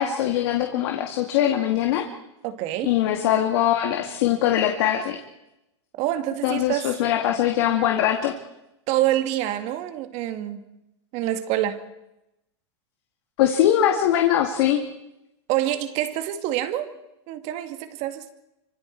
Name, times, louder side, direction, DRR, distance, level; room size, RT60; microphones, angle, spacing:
voice 1, 0.0-2.1 2.8-5.2 6.4-8.3 13.4-14.8, left 11 dB, 60° left, 2.2 m, -22 dB
voice 2, 2.4-2.9 6.0-7.0 8.9-10.6 11.1-11.8 15.5-16.9 17.3-18.3, right 13 dB, 50° right, 2.3 m, -26 dB
26.0 x 25.5 x 4.7 m
hypercardioid pair, 120°, 15 cm